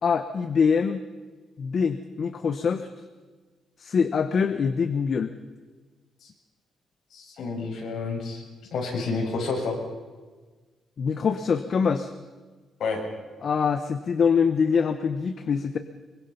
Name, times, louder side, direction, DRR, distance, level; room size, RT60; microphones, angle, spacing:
voice 1, 0.0-1.0 1.6-2.9 3.8-5.3 11.0-12.1 13.4-15.8, left 6 dB, 40° left, 9 dB, 1.0 m, -24 dB
voice 2, 7.1-8.4 8.7-9.8 12.8-13.0, left 4 dB, 55° left, -1 dB, 7.0 m, -29 dB
24.0 x 23.5 x 5.7 m, 1.4 s
cardioid pair, 165°, 0 cm